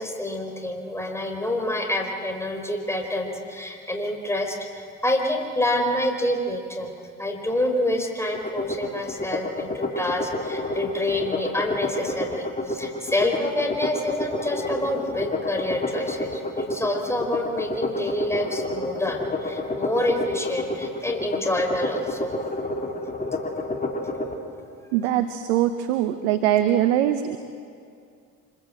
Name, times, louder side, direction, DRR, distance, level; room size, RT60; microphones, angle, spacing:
voice 1, 0.0-6.9 7.2-22.4, left 1 dB, 5° left, 2 dB, 4.7 m, -27 dB
sound 1, 8.3-24.3, left 2 dB, 25° left, 3.6 m, -29 dB
voice 2, 24.9-27.4, right 11 dB, 85° right, 9 dB, 1.0 m, -22 dB
25.5 x 24.0 x 7.8 m, 2.3 s
hypercardioid pair, 60°, 35 cm